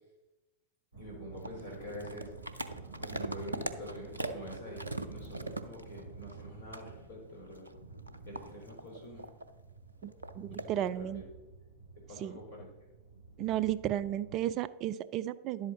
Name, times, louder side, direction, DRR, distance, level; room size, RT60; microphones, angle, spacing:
sound 1, 0.9-14.4, right 4 dB, 90° left, 2.8 m, -50 dB
voice 1, 1.0-2.3 3.0-7.7 8.2-9.3 10.5-11.2 12.1-12.7, left 1 dB, 70° left, -2 dB, 4.0 m, -46 dB
sound 2, 1.4-6.5 6.7-6.9 7.5-9.5 10.0-10.7, right 2 dB, 80° right, 0.6 m, -41 dB
voice 2, 10.0-11.2 12.2-12.4 13.4-15.7, right 12 dB, 35° right, 17 dB, 0.3 m, -34 dB
11.0 x 7.9 x 4.0 m, 1.0 s
figure-of-eight pair, 90°, 0 cm